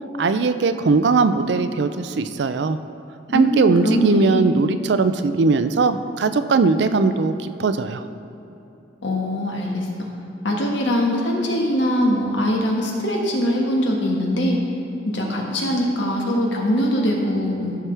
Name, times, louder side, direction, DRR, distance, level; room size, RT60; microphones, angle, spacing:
voice 1, 0.2-2.8 3.3-8.0, right 4 dB, 65° right, 10 dB, 0.4 m, -19 dB
voice 2, 3.3-4.5 9.0-10.1 10.4-14.6 15.1-17.8, equal, 80° left, -1 dB, 1.5 m, -22 dB
14.0 x 5.9 x 3.4 m, 2.9 s
head